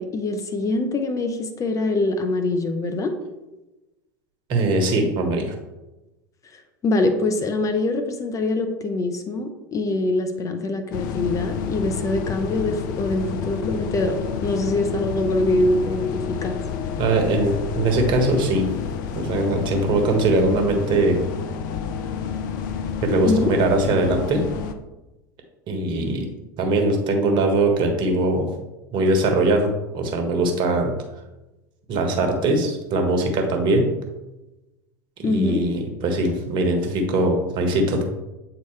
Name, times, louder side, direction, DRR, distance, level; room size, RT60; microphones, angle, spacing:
voice 1, 0.0-3.1 6.8-16.6 23.2-23.5 35.2-35.6, left 2 dB, 30° left, 7 dB, 0.8 m, -24 dB
voice 2, 4.5-5.5 17.0-18.7 19.1-21.2 23.0-24.4 25.7-26.3 26.6-28.5 28.9-30.9 31.9-33.9 35.2-38.0, right 2 dB, 45° right, 4 dB, 1.4 m, -21 dB
sound 1, 10.9-24.7, left 7 dB, 65° left, 0.6 m, -29 dB
8.4 x 3.9 x 3.3 m, 1.0 s
hypercardioid pair, 80°, 11 cm